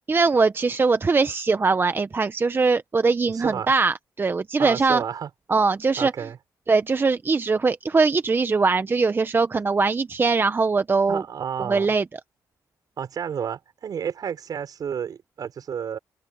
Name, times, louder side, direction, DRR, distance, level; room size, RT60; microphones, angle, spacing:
voice 1, 0.0-5.0 5.5-6.1 6.7-11.2 11.7-12.0, right 4 dB, 30° right, 0.9 m, -21 dB
voice 2, 3.3-3.7 4.6-5.3 6.0-6.4 11.1-11.9 13.0-16.0, right 8 dB, 60° right, 6.4 m, -31 dB
cardioid pair, 85°, 7 cm